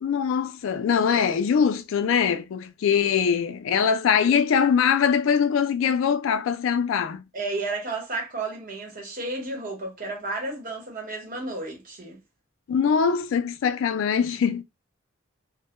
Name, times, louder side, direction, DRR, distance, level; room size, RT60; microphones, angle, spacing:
voice 1, 0.0-7.2 12.7-14.6, left 7 dB, 70° left, 0.3 m, -22 dB
voice 2, 7.3-12.2, right 2 dB, 40° right, 1.0 m, -32 dB
2.1 x 2.1 x 2.9 m
head